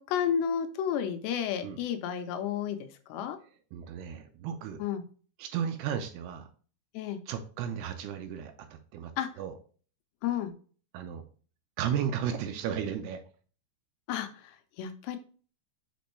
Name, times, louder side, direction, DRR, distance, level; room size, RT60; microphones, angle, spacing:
voice 1, 0.0-3.4 4.8-5.0 6.9-7.2 9.2-9.3 10.2-10.5 14.1-15.2, left 8 dB, 80° left, 8 dB, 2.8 m, -32 dB
voice 2, 3.7-4.8 5.4-6.5 7.3-8.7 8.9-9.1 9.4-9.5 10.9-11.2 11.8-13.2, right 8 dB, 80° right, 7 dB, 2.5 m, -34 dB
6.8 x 5.1 x 3.1 m, 0.41 s
omnidirectional pair, 5.0 m